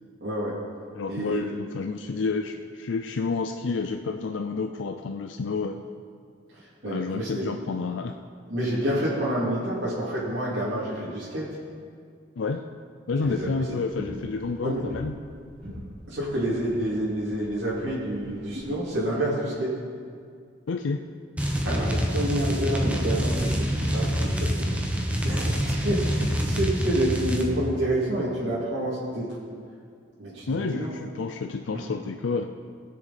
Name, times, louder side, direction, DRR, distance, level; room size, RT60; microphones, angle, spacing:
voice 1, 0.2-0.6 1.1-1.4 6.5-7.4 8.5-11.5 13.2-13.6 14.6-14.9 16.1-19.7 21.6-24.7 25.2-29.3 30.2-30.9 31.7-31.8, right 1 dB, 75° right, -10 dB, 2.6 m, -28 dB
voice 2, 0.9-5.8 6.8-8.2 12.4-12.6 13.1-15.1 20.7-21.0 30.5-32.5, left 4 dB, 90° left, 6 dB, 0.5 m, -29 dB
sound 1, 13.2-18.9, equal, 50° right, 3.3 m, -42 dB
sound 2, 21.4-27.5, equal, 5° right, 0.9 m, -26 dB
19.0 x 6.6 x 4.2 m, 2.2 s
head